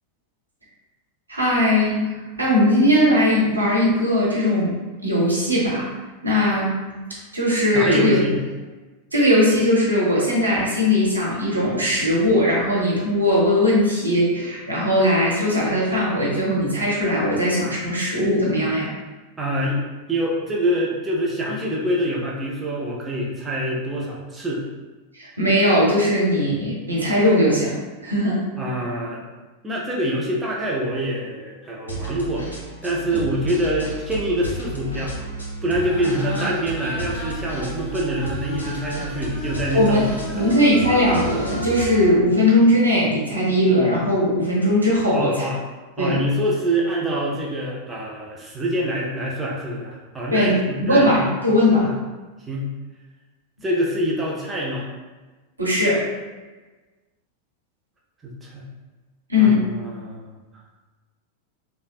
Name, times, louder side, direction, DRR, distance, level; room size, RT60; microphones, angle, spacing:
voice 1, 1.3-4.8 5.0-5.9 6.2-6.8 7.3-8.2 9.1-18.9 25.1-28.4 39.7-40.1 40.3-45.4 46.0-46.2 50.3-50.6 50.8-52.0 55.6-56.1 59.3-59.6, left 1 dB, 80° right, -6 dB, 0.8 m, -19 dB
voice 2, 7.7-8.4 19.4-19.8 20.1-24.6 28.6-29.2 29.6-32.4 32.8-35.2 35.6-40.4 45.1-45.6 46.0-51.3 51.8-51.9 52.5-52.7 53.6-54.8 58.2-58.7 59.4-60.3, right 1 dB, 15° right, -4 dB, 0.5 m, -25 dB
sound 1, 31.9-42.1, right 2 dB, 80° left, 0.6 m, -33 dB
sound 2, 35.8-42.1, right 1 dB, 40° left, 0.7 m, -34 dB
3.2 x 2.1 x 2.3 m, 1.2 s
figure-of-eight pair, 90°, 0 cm